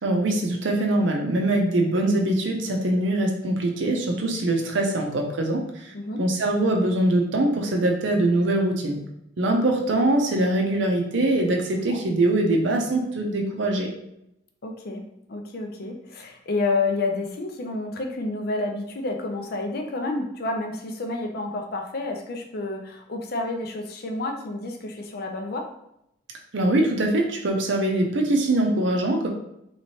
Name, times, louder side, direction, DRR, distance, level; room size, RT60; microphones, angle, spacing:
voice 1, 0.0-5.9 6.2-9.0 9.4-13.9 26.5-29.3, right 1 dB, 70° right, 1 dB, 0.6 m, -23 dB
voice 2, 14.6-25.7, left 2 dB, 50° left, 3 dB, 0.5 m, -29 dB
3.2 x 3.0 x 2.8 m, 0.79 s
head